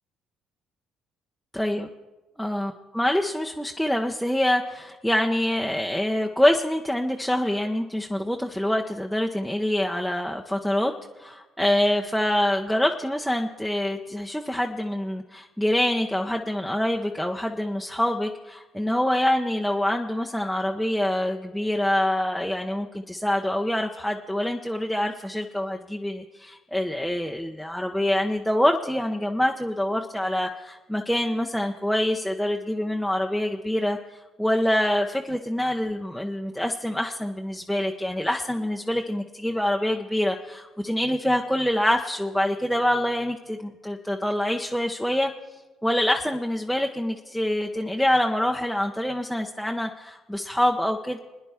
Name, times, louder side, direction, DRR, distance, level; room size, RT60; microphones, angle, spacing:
voice 1, 1.5-1.9 2.4-10.9 11.2-45.3 45.8-51.2, left 1 dB, ahead, 1 dB, 0.8 m, -25 dB
26.0 x 9.9 x 3.6 m, 1.2 s
hypercardioid pair, 55°, 0 cm